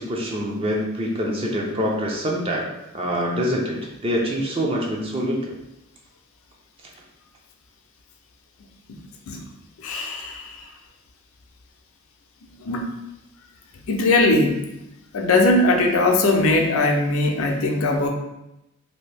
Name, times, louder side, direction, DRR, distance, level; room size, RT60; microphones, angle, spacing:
voice 1, 0.0-3.8 4.0-5.4, equal, 25° right, -2 dB, 0.5 m, -25 dB
voice 2, 9.8-10.6 12.6-12.9 13.9-14.6 15.1-18.1, left 2 dB, 70° left, 2 dB, 0.5 m, -20 dB
2.8 x 2.6 x 3.3 m, 0.90 s
head